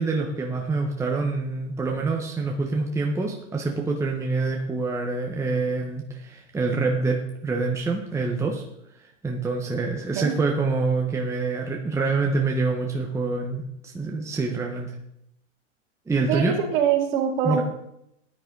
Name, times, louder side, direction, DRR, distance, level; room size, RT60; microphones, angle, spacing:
voice 1, 0.0-8.6 9.2-14.9 16.1-16.5 17.4-17.6, right 3 dB, 10° right, 0 dB, 1.2 m, -26 dB
voice 2, 16.3-17.6, right 8 dB, 50° right, 2 dB, 2.7 m, -23 dB
14.5 x 10.0 x 4.0 m, 0.78 s
hypercardioid pair, 130°, 36 cm